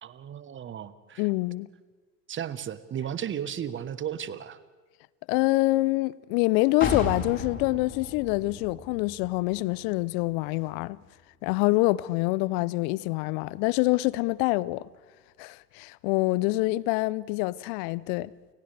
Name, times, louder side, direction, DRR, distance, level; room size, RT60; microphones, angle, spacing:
voice 1, 0.0-1.3 2.3-4.6, right 9 dB, 25° right, 1.2 m, -35 dB
voice 2, 1.2-1.7 5.3-11.0 11.4-14.9 15.4-18.3, left 20 dB, 45° left, 0.7 m, -26 dB
sound 1, 6.8-10.6 10.9-11.0, left 4 dB, 25° left, 3.9 m, -35 dB
30.0 x 29.5 x 3.4 m
hypercardioid pair, 90°, 48 cm